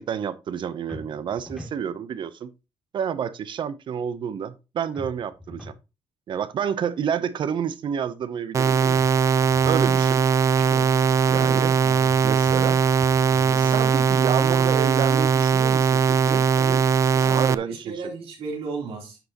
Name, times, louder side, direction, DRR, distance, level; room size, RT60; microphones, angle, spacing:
voice 1, 0.0-2.5 2.9-5.7 6.3-9.0 9.7-10.2 11.3-11.7 12.2-12.8 13.5-16.8 17.1-18.0, right 8 dB, 55° right, 0.7 m, -29 dB
sound 1, 0.9-1.8 4.9-5.8 8.9-9.8 12.4-13.4, left 1 dB, ahead, 2.4 m, -42 dB
sound 2, 8.5-17.5, right 6 dB, 35° right, 0.3 m, -20 dB
voice 2, 10.6-10.9 17.2-19.2, right 4 dB, 90° right, 3.6 m, -37 dB
10.0 x 6.1 x 2.9 m
cardioid pair, 135°, 10 cm